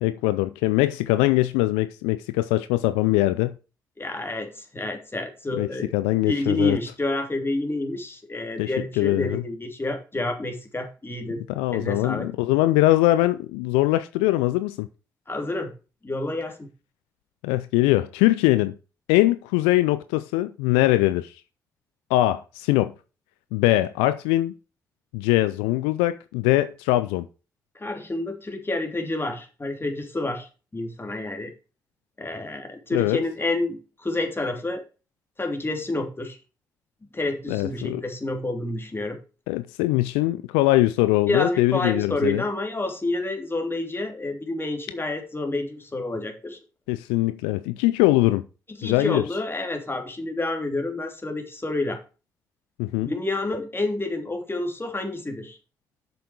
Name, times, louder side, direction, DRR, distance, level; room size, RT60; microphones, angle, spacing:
voice 1, 0.0-3.5 5.6-6.8 8.6-8.7 9.0-9.4 11.5-14.9 17.4-18.7 19.1-21.3 22.1-22.9 23.5-24.5 25.1-27.3 32.9-33.2 37.5-38.0 39.5-42.4 46.9-48.4 48.8-49.2 52.8-53.1, left 17 dB, 80° left, 0.4 m, -22 dB
voice 2, 4.0-5.9 6.3-11.4 11.7-12.3 15.3-15.7 16.0-16.7 27.7-31.5 32.2-34.8 35.4-36.4 37.0-39.2 41.3-46.6 48.7-52.0 53.0-55.6, left 2 dB, 25° left, 3.0 m, -29 dB
8.1 x 6.7 x 4.7 m
hypercardioid pair, 40°, 9 cm